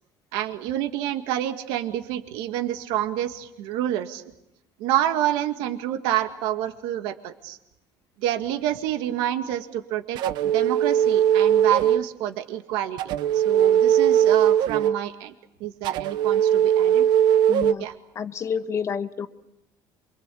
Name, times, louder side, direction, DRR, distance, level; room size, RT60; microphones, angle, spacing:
voice 1, 0.3-4.2 4.8-7.6 8.2-10.2 10.4-13.0 13.3-15.3 15.6-17.0 17.8-17.9, right 12 dB, 90° right, 7 dB, 2.0 m, -28 dB
sound 1, 10.2-12.1 13.0-15.0 15.8-17.7, right 10 dB, 65° right, 1.0 m, -20 dB
voice 2, 17.5-17.8 18.1-19.3, left 7 dB, 40° left, 9 dB, 1.4 m, -29 dB
28.0 x 24.5 x 8.6 m, 0.86 s
cardioid pair, 135°, 8 cm